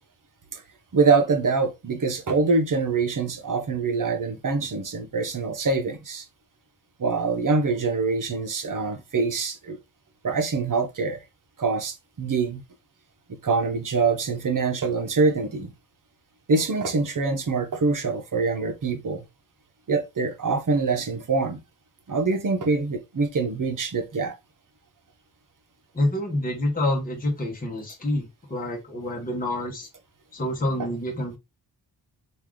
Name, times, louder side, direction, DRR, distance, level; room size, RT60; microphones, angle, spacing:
voice 1, 0.9-6.2 7.0-9.8 10.2-11.2 11.6-12.6 13.3-15.7 16.5-19.2 19.9-21.6 22.1-24.3, right 4 dB, 45° right, 0.8 m, -24 dB
voice 2, 25.9-29.9 30.3-31.4, left 1 dB, 20° left, 1.0 m, -27 dB
3.3 x 2.5 x 3.5 m
wide cardioid pair, 95°, 43 cm